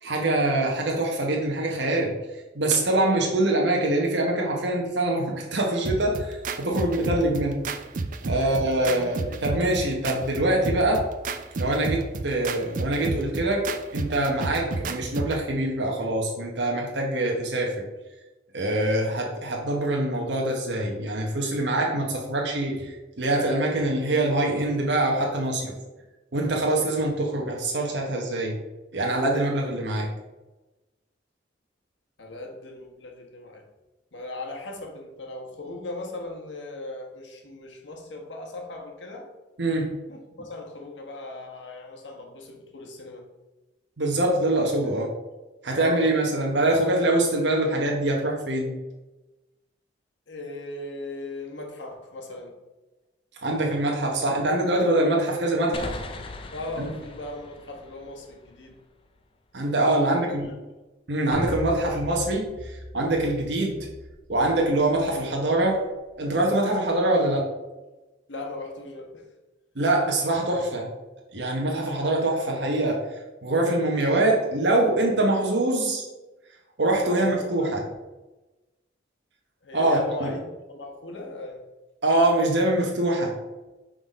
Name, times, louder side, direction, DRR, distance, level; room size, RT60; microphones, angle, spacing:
voice 1, 0.0-2.2 2.5-7.6 8.2-11.1 11.6-17.7 18.5-25.7 26.3-28.6 28.9-30.1 39.6-40.0 44.0-45.1 45.6-48.8 53.4-55.9 56.8-56.9 59.5-60.5 61.1-63.8 64.3-65.8 66.2-67.5 69.8-70.9 71.3-73.0 73.4-76.1 76.8-77.8 79.7-80.3 82.0-83.3, right 1 dB, 70° right, -1 dB, 1.0 m, -24 dB
sound 1, 5.8-15.4, right 3 dB, 45° right, 0.4 m, -32 dB
voice 2, 8.3-9.6 32.2-33.6 34.1-39.3 40.1-43.2 45.7-46.4 50.3-52.5 56.5-58.8 59.6-60.5 68.3-69.2 76.9-77.7 79.6-81.6, left 2 dB, 80° left, 1 dB, 1.3 m, -38 dB
sound 2, 55.7-59.2, left 2 dB, 30° left, 0.5 m, -40 dB
sound 3, 61.3-65.8 66.1-66.2, equal, 50° left, 1.2 m, -38 dB
6.0 x 3.8 x 5.0 m, 1.1 s
head